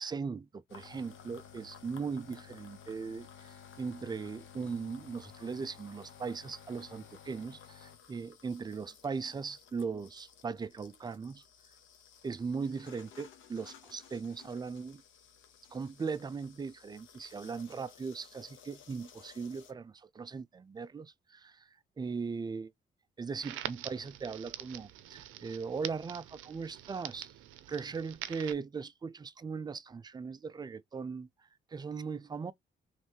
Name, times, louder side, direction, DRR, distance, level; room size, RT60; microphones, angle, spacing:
voice 1, 0.0-11.4 12.2-15.0 15.7-21.7 22.0-22.7 23.2-27.3 27.7-31.3 31.7-32.5, right 5 dB, 20° right, 0.4 m, -39 dB
sound 1, 0.7-19.7, left 8 dB, 80° left, 1.0 m, -55 dB
Crackle, 23.4-28.5, right 13 dB, 85° right, 0.5 m, -45 dB
3.2 x 3.1 x 4.4 m
cardioid pair, 90°, 20 cm